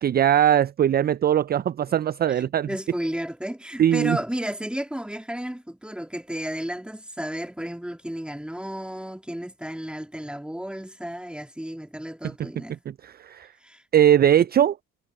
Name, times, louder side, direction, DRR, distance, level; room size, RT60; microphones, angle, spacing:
voice 1, 0.0-2.7 3.8-4.2 13.0-13.5 13.9-14.8, right 10 dB, 30° right, 0.4 m, -20 dB
voice 2, 2.3-12.8 13.6-13.8, equal, 5° right, 3.0 m, -33 dB
supercardioid pair, 65°, 32 cm